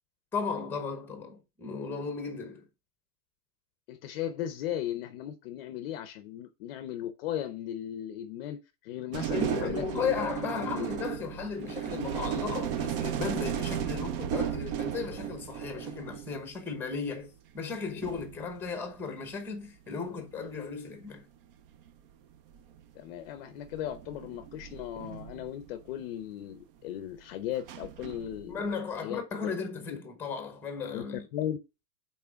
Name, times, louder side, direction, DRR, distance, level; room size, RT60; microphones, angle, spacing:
voice 1, 0.3-2.6 9.3-21.2 28.5-31.3, left 5 dB, 5° left, 0.9 m, -35 dB
voice 2, 3.9-10.1 10.5-10.9 23.0-28.7 29.0-29.5 30.9-31.1 31.3-31.6, left 11 dB, 40° left, 0.6 m, -37 dB
sound 1, 9.1-16.6 17.7-17.8 18.0-19.3 20.4-20.7 21.9-22.0 22.5-22.8 23.6-26.0 27.5-28.7, right 10 dB, 40° right, 0.5 m, -35 dB
5.9 x 4.3 x 4.9 m
supercardioid pair, 155°, 47 cm